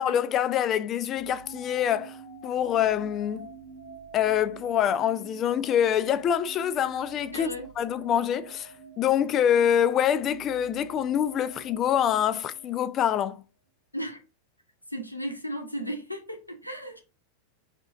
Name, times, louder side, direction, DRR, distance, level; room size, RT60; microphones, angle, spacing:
voice 1, 0.0-2.2 2.4-3.5 4.1-7.5 7.8-8.7 9.0-13.4, left 9 dB, 30° left, 0.3 m, -25 dB
sound 1, 1.1-13.2, right 4 dB, 90° right, 1.3 m, -47 dB
voice 2, 7.3-7.7 13.9-14.2 14.9-17.0, equal, 90° left, 0.8 m, -35 dB
3.3 x 3.1 x 3.5 m
figure-of-eight pair, 90°, 0 cm